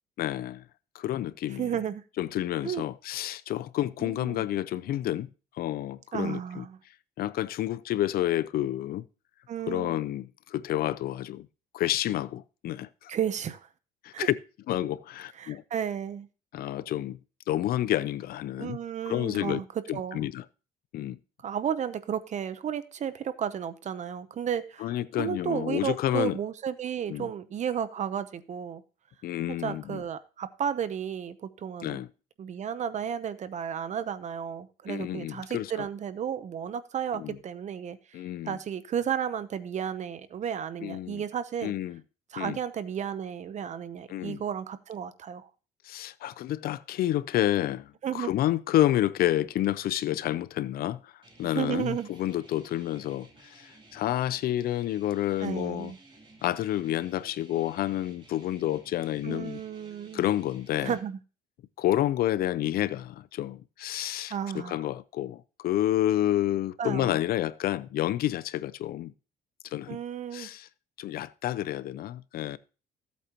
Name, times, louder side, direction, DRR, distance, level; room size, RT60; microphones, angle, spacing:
voice 1, 0.2-0.6 0.9-1.7 2.2-5.3 5.6-6.6 7.2-9.0 9.7-11.5 11.7-13.1 14.0-14.3 14.7-15.6 16.5-17.2 17.5-18.8 19.1-19.6 19.9-20.4 20.9-21.2 24.8-26.4 27.1-27.3 29.2-30.0 31.8-32.1 34.9-35.9 37.1-37.4 38.1-38.6 40.8-41.2 41.6-42.0 42.4-42.6 44.1-44.4 45.8-55.9 56.4-59.6 60.1-60.9 61.8-69.1 69.6-70.0 70.3-70.7 71.0-72.6, left 13 dB, 60° left, 0.5 m, -29 dB
voice 2, 1.6-2.0 2.6-2.8 4.0-4.4 6.1-6.8 9.5-10.0 13.1-13.7 14.1-14.3 15.4-16.3 18.6-19.7 19.9-20.2 21.4-24.9 25.2-28.8 29.5-32.0 32.4-38.0 38.5-41.7 42.3-45.5 48.0-48.3 51.5-52.1 55.4-56.0 59.2-60.3 60.8-61.2 64.3-64.8 66.8-67.2 69.9-70.5, right 8 dB, 45° right, 0.8 m, -33 dB
sound 1, 51.2-61.0, right 2 dB, 30° right, 3.0 m, -55 dB
14.5 x 8.4 x 2.9 m
cardioid pair, 110°, 17 cm